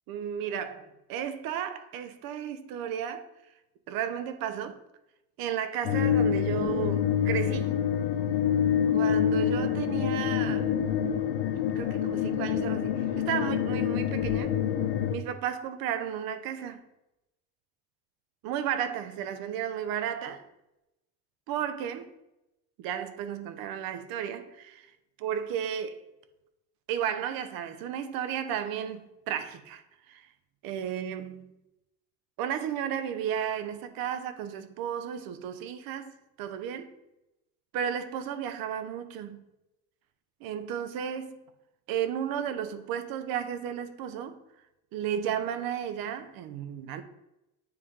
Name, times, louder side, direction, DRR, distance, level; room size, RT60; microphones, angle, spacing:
voice 1, 0.1-3.3 3.9-4.8 5.4-7.7 8.9-10.7 11.7-14.5 15.1-16.8 18.4-20.4 21.5-22.1 22.8-24.9 25.2-26.0 26.9-30.3 30.6-31.5 32.4-36.1 36.4-36.9 37.7-39.4 40.4-41.4 41.9-44.4 44.9-47.0, right 9 dB, 60° right, 0.9 m, -33 dB
sound 1, 5.8-15.1, left 9 dB, 85° left, 1.0 m, -27 dB
9.6 x 3.5 x 3.6 m
cardioid pair, 135°, 40 cm